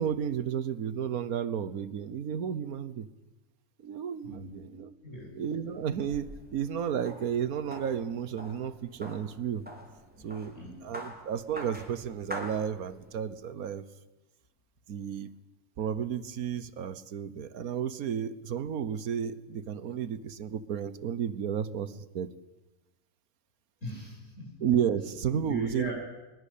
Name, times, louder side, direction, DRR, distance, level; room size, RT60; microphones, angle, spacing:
voice 1, 0.0-3.1 3.8-4.9 5.4-9.7 10.2-10.5 10.8-13.8 14.9-15.3 15.8-22.3 24.6-25.9, right 8 dB, 90° right, 16 dB, 1.6 m, -32 dB
voice 2, 4.2-4.7 5.0-5.3 10.2-10.3 10.5-10.8 23.8-24.6 25.4-25.9, equal, 60° left, -3 dB, 7.1 m, -39 dB
sound 1, 5.7-13.2, equal, 5° right, 4.0 m, -46 dB
22.5 x 21.0 x 8.5 m, 1.1 s
omnidirectional pair, 1.5 m